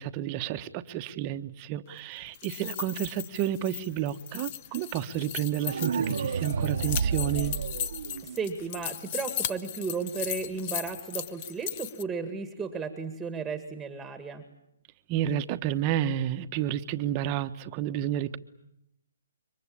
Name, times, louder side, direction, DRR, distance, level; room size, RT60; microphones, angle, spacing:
voice 1, 0.0-7.5 15.1-18.4, right 11 dB, 30° right, 9 dB, 1.3 m, -31 dB
sound 1, 2.2-12.0, left 11 dB, 35° left, 1.0 m, -37 dB
sound 2, 5.7-8.7, right 6 dB, 65° right, 1.2 m, -30 dB
voice 2, 8.3-14.4, right 5 dB, 10° right, 8 dB, 1.9 m, -34 dB
28.0 x 24.0 x 8.7 m, 0.81 s
hypercardioid pair, 150°, 0 cm